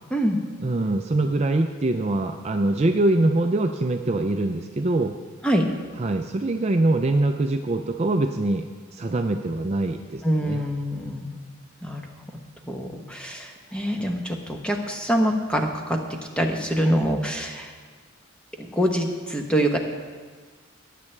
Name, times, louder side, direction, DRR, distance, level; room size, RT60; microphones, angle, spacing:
voice 1, 0.6-5.1 6.0-8.7 8.9-10.6, right 2 dB, 30° right, 5 dB, 0.4 m, -23 dB
voice 2, 10.2-11.4 11.8-12.1 12.7-17.7 18.6-19.8, equal, 5° left, 2 dB, 0.9 m, -25 dB
19.0 x 8.4 x 3.3 m, 1.5 s
head